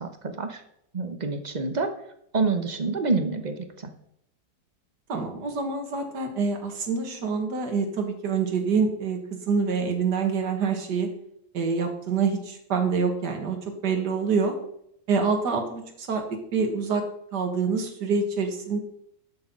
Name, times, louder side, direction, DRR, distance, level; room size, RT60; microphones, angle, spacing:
voice 1, 0.0-0.6 0.9-1.9 2.3-3.9, right 4 dB, 30° right, 6 dB, 0.8 m, -27 dB
voice 2, 5.1-11.1 11.5-14.5 15.1-16.2 16.5-17.0 17.3-18.8, right 5 dB, 65° right, 4 dB, 2.2 m, -26 dB
12.0 x 6.3 x 5.3 m, 0.73 s
omnidirectional pair, 2.0 m